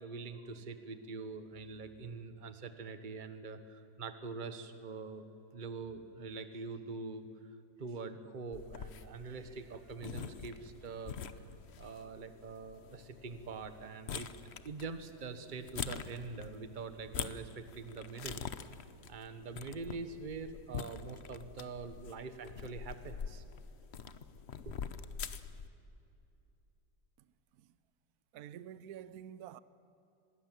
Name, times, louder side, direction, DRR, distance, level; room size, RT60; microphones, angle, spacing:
voice 1, 0.0-5.2 5.5-7.3 7.8-11.1 11.8-14.3 14.6-18.4 19.1-23.4 24.6-25.1, right 4 dB, 30° right, 1.3 m, -44 dB
sound 1, 8.5-25.7, left 7 dB, 50° left, 0.9 m, -45 dB
voice 2, 27.2-27.8 28.3-29.6, right 10 dB, 65° right, 1.1 m, -49 dB
25.5 x 21.0 x 7.6 m
omnidirectional pair, 1.9 m